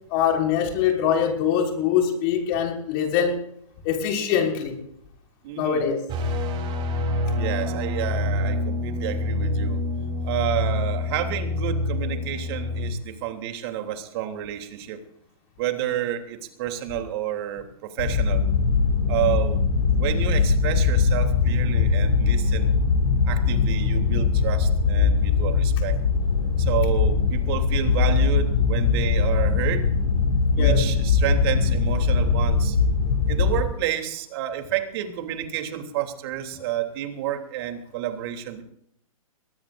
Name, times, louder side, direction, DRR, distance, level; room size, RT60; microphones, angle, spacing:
voice 1, 0.1-3.4 3.8-4.8 5.6-6.0 30.6-30.8, left 8 dB, 40° left, 1 dB, 5.7 m, -23 dB
voice 2, 5.4-5.8 7.4-9.8 10.2-15.0 15.6-18.4 19.1-19.6 19.9-22.7 23.3-26.0 26.6-29.9 30.6-32.8 33.3-38.6, right 11 dB, 45° right, 5 dB, 3.2 m, -30 dB
sound 1, 6.1-12.9, left 2 dB, 25° right, 3.7 m, -26 dB
sound 2, 18.0-33.6, left 5 dB, 75° left, 4.5 m, -21 dB
22.0 x 18.5 x 2.6 m, 0.70 s
hypercardioid pair, 135°, 18 cm